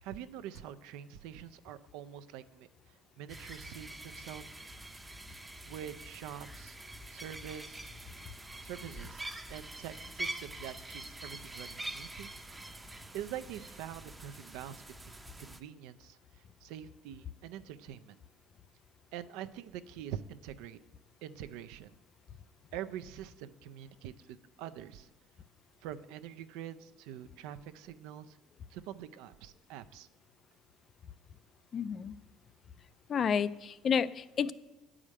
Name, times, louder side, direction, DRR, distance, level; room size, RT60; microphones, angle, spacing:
voice 1, 0.0-4.6 5.7-6.8 7.1-7.9 8.6-12.3 13.1-16.2 16.6-18.2 19.1-20.8 21.2-21.9 22.7-25.1 25.8-28.4 28.7-30.1, right 10 dB, 85° right, 12 dB, 0.4 m, -45 dB
sound 1, 3.3-15.6, right 1 dB, 10° right, 0.6 m, -45 dB
voice 2, 31.7-32.1 33.1-34.5, left 7 dB, 40° left, 16 dB, 0.3 m, -30 dB
9.7 x 4.9 x 7.4 m, 1.0 s
cardioid pair, 120°, 0 cm